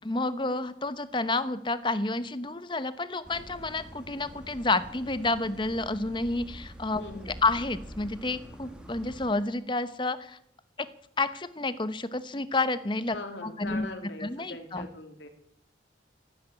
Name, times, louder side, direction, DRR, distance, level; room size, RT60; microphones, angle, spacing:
voice 1, 0.0-7.0 7.4-10.4 10.8-10.9 11.2-13.2 13.4-13.9 14.2-14.9, left 2 dB, 25° left, 13 dB, 0.9 m, -30 dB
sound 1, 3.2-9.3, equal, 5° right, 1.9 m, -46 dB
voice 2, 6.9-7.4 13.1-15.3, left 2 dB, 80° left, 4 dB, 3.1 m, -41 dB
15.5 x 9.3 x 9.8 m, 0.70 s
head